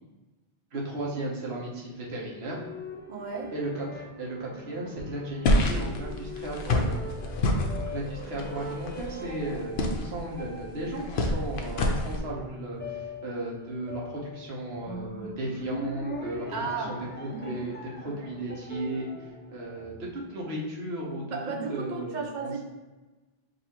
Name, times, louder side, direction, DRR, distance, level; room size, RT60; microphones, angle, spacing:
voice 1, 0.7-2.6 3.5-16.5 16.8-19.1 19.5-21.4 21.7-22.6, right 1 dB, 75° right, -3 dB, 1.3 m, -35 dB
sound 1, 1.9-20.5, left 1 dB, 15° left, 0.4 m, -42 dB
voice 2, 3.1-3.5 16.5-17.0 17.3-17.6 21.3-22.6, right 4 dB, 50° right, 2 dB, 0.7 m, -34 dB
sound 2, 5.4-12.2, left 1 dB, 75° left, 0.8 m, -28 dB
5.2 x 2.7 x 2.9 m, 1.2 s
omnidirectional pair, 1.1 m